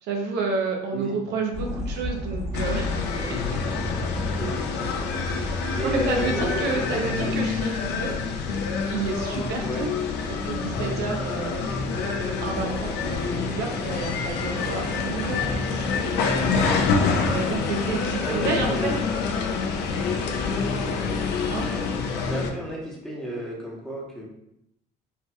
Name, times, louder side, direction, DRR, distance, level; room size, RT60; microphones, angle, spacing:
voice 1, 0.0-3.2 5.4-8.1 8.9-9.9 10.3-11.7 12.4-16.2 17.3-19.0 21.5-21.7, right 4 dB, 80° right, 2 dB, 0.7 m, -30 dB
sound 1, 1.5-17.6, left 2 dB, 40° left, 1.4 m, -37 dB
sound 2, 2.5-22.5, left 4 dB, 75° left, 0.5 m, -27 dB
voice 2, 5.3-7.4 9.6-9.9 18.2-19.1 21.6-21.9 22.3-24.2, left 1 dB, 5° left, -5 dB, 1.1 m, -33 dB
4.4 x 2.7 x 2.3 m, 0.79 s
cardioid pair, 110°, 17 cm